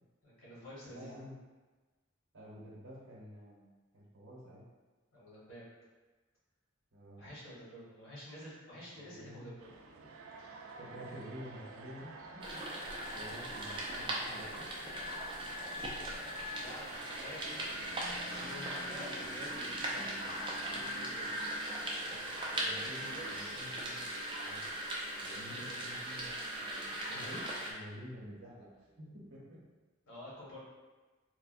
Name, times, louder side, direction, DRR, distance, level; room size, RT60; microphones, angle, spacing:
voice 1, 0.2-1.2 5.1-5.7 7.2-9.7 16.6-21.3 22.1-23.5 25.5-25.8 30.1-30.6, equal, 80° left, -8 dB, 1.2 m, -50 dB
voice 2, 0.9-1.3 2.3-3.7 3.9-4.6 6.9-7.2 9.1-9.5 10.0-10.1 10.8-12.6 13.1-14.7 22.6-24.0 24.3-24.7 25.2-28.7 29.0-29.6, equal, 70° right, -5 dB, 0.8 m, -49 dB
sound 1, 9.6-18.9, right 3 dB, 90° right, 0.3 m, -50 dB
sound 2, 12.4-27.7, right 1 dB, 25° right, 0.4 m, -39 dB
sound 3, 19.1-29.7, right 3 dB, 10° right, 0.8 m, -58 dB
3.3 x 2.1 x 2.4 m, 1.3 s
head